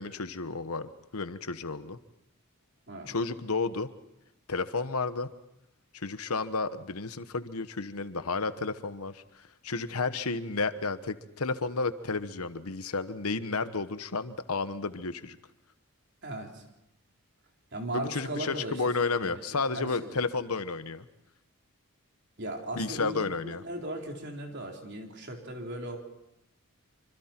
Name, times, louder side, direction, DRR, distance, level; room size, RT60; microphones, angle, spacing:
voice 1, 0.0-2.0 3.1-3.9 4.5-5.3 5.9-9.2 9.6-15.4 17.9-21.1 22.7-23.6, left 4 dB, 80° left, 12 dB, 1.1 m, -32 dB
voice 2, 16.2-16.6 17.7-18.8 19.2-20.2 22.4-26.0, right 1 dB, 50° right, 1 dB, 4.0 m, -38 dB
26.5 x 25.0 x 4.5 m, 0.86 s
head